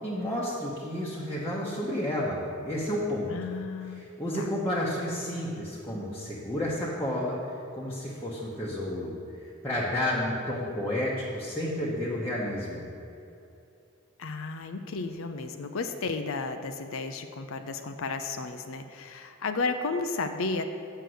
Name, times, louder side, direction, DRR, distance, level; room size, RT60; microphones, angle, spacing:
voice 1, 0.0-3.3 3.9-12.8, left 1 dB, 10° left, -7 dB, 1.0 m, -31 dB
voice 2, 3.3-4.1 4.3-4.4 14.2-20.6, left 3 dB, 70° left, 7 dB, 0.5 m, -33 dB
6.7 x 6.5 x 7.7 m, 2.7 s
head